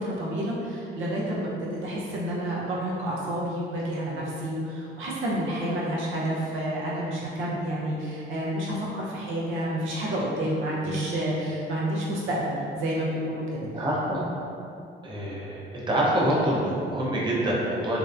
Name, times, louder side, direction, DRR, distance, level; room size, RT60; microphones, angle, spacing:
voice 1, 0.0-13.7, right 1 dB, 80° right, -5 dB, 0.5 m, -29 dB
voice 2, 13.6-14.2 15.0-18.0, right 1 dB, 25° right, -5 dB, 0.6 m, -26 dB
2.6 x 2.0 x 2.3 m, 2.5 s
cardioid pair, 90°, 20 cm